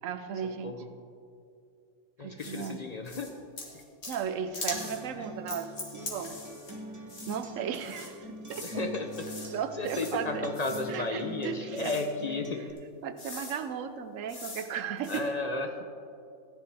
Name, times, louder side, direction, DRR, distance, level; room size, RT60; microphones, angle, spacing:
voice 1, 0.0-0.7 2.2-2.8 4.1-6.4 7.3-8.8 9.5-10.5 10.9-11.9 13.0-15.3, right 7 dB, 90° right, 9 dB, 1.0 m, -35 dB
voice 2, 2.2-3.3 8.6-9.3 9.8-12.6 15.1-15.8, left 3 dB, 40° left, 5 dB, 0.6 m, -33 dB
sound 1, 2.4-2.7 3.1-3.3 3.6-4.2 4.5-5.0 5.5-6.8 7.1-7.4 7.7-8.1 8.5-8.8 9.1-9.5 9.8-10.2 10.5-10.9 11.7-12.0 12.8-12.9 13.2-13.6 14.3-14.7 15.0-15.2, left 2 dB, 60° left, 1.9 m, -41 dB
Acoustic guitar, 4.7-12.7, equal, 20° right, 0.6 m, -44 dB
14.0 x 10.0 x 3.4 m, 2.5 s
omnidirectional pair, 1.3 m